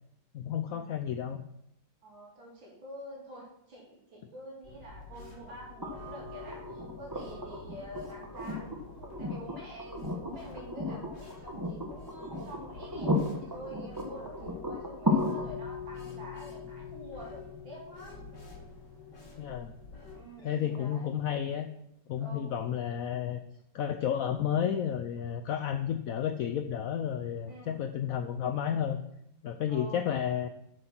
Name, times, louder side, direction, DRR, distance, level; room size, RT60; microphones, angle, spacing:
voice 1, 0.3-1.4 19.4-19.7 20.4-21.7 22.1-23.4 23.7-29.0 29.4-30.5, left 9 dB, 80° left, 8 dB, 0.7 m, -31 dB
voice 2, 2.0-13.1 13.4-18.2 20.1-21.1 22.2-22.5 27.5-27.8 29.7-30.1, equal, 90° right, -3 dB, 3.7 m, -47 dB
sound 1, 4.6-20.2, left 3 dB, 40° left, 2.3 m, -49 dB
sound 2, 5.8-19.8 21.5-21.6, left 1 dB, 20° right, 0.6 m, -36 dB
7.7 x 6.6 x 6.0 m, 0.80 s
omnidirectional pair, 2.0 m